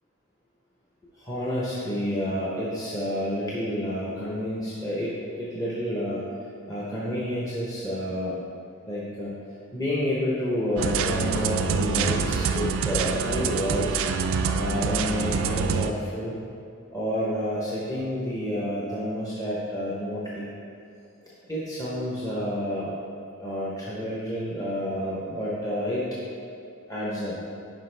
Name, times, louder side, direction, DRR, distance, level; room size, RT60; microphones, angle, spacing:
voice 1, 1.2-6.2 6.7-8.4 8.9-9.3 9.7-14.0 14.5-16.4 16.9-20.5 21.5-22.9 23.4-26.1 26.9-27.4, equal, 15° left, -8 dB, 0.8 m, -29 dB
sound 1, 10.8-15.9, right 5 dB, 60° right, 0.4 m, -26 dB
10.0 x 5.0 x 3.3 m, 2.5 s
head